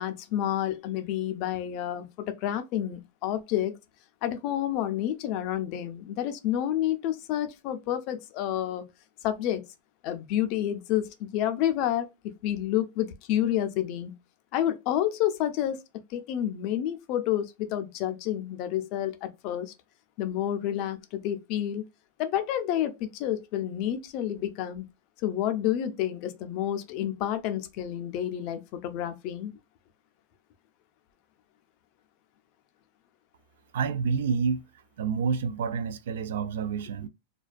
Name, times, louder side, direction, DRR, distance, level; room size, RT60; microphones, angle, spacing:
voice 1, 0.0-3.7 4.2-8.8 9.2-9.6 10.0-14.1 14.5-15.8 16.1-19.7 20.2-21.9 22.2-24.9 25.2-29.5, left 11 dB, 35° left, 0.4 m, -29 dB
voice 2, 33.7-34.6 35.0-37.1, right 5 dB, 75° right, 0.3 m, -28 dB
2.5 x 2.2 x 2.3 m
supercardioid pair, 165°, 0 cm